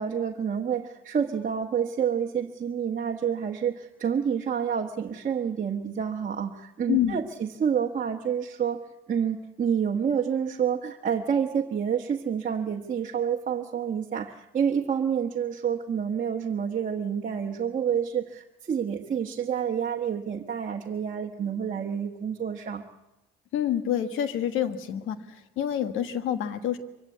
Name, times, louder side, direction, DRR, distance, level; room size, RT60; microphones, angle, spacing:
voice 1, 0.0-8.8 9.1-22.8, right 7 dB, 40° right, 0 dB, 1.3 m, -28 dB
voice 2, 6.9-7.2 23.5-26.8, left 10 dB, 90° left, 10 dB, 1.4 m, -27 dB
24.0 x 16.0 x 8.4 m, 0.97 s
cardioid pair, 90°, 20 cm